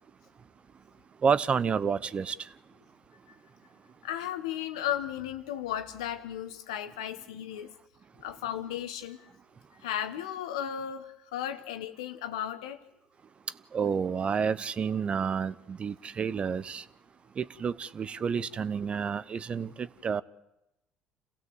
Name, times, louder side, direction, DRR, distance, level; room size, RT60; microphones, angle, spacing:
voice 1, 1.2-2.3 13.7-16.8 17.4-20.2, right 6 dB, 40° right, 0.8 m, -29 dB
voice 2, 4.0-7.7 8.2-9.3 9.8-12.8, left 10 dB, 90° left, 1.4 m, -35 dB
27.0 x 16.0 x 8.0 m
supercardioid pair, 70°, 3 cm